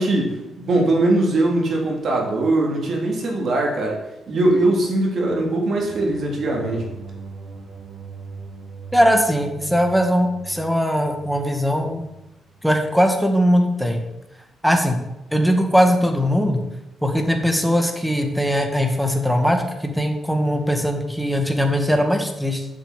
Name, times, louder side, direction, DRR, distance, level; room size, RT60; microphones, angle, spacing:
voice 1, 0.0-4.0 4.3-6.9, right 2 dB, 55° right, -1 dB, 3.5 m, -21 dB
sound 1, 5.7-13.0, right 4 dB, 75° right, 1.3 m, -40 dB
voice 2, 8.9-12.0 12.6-14.0 14.6-15.0 15.3-16.6 17.0-22.7, equal, ahead, 4 dB, 1.7 m, -20 dB
8.6 x 7.2 x 7.4 m, 0.93 s
cardioid pair, 105°, 0 cm